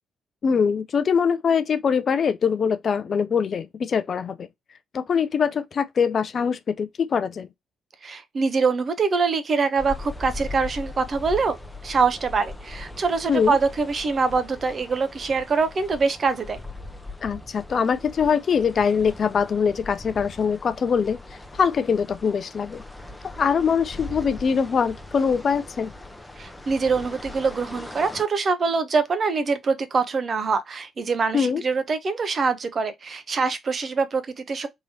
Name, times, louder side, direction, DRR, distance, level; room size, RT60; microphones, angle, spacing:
voice 1, 0.4-4.5 4.9-7.5 13.3-13.6 17.2-21.2 21.5-22.8 23.2-25.9 31.3-31.6, left 6 dB, 50° left, 0.4 m, -23 dB
voice 2, 8.0-11.6 11.8-16.6 26.4-34.7, right 4 dB, 45° right, 0.7 m, -24 dB
sound 1, 9.8-28.2, left 2 dB, 10° left, 0.8 m, -40 dB
3.7 x 3.0 x 2.7 m
figure-of-eight pair, 40°, 0 cm